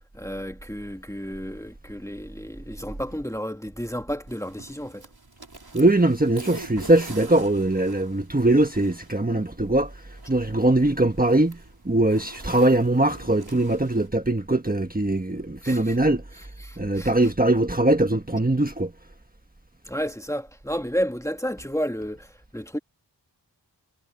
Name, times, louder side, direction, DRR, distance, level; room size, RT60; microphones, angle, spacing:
voice 1, 0.1-5.1 15.6-16.0 16.4-17.1 19.8-22.8, equal, 5° left, 1.9 m, -32 dB
sound 1, 4.3-14.1, right 2 dB, 60° right, 4.8 m, -45 dB
voice 2, 5.7-9.9 10.3-11.6 11.8-16.2 16.8-18.9, right 2 dB, 20° right, 1.5 m, -21 dB
wide cardioid pair, 55°, 43 cm